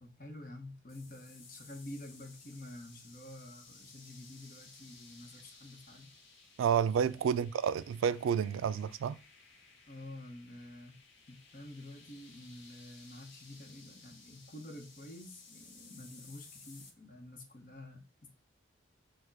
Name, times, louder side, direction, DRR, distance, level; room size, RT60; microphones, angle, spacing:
voice 1, 0.0-6.1 6.9-7.3 9.9-10.9 11.3-18.3, left 1 dB, 45° left, 0.9 m, -49 dB
sound 1, 0.9-16.9, left 4 dB, 80° left, 1.2 m, -58 dB
voice 2, 6.6-9.2, right 7 dB, 85° right, 0.3 m, -30 dB
4.5 x 2.2 x 4.5 m
head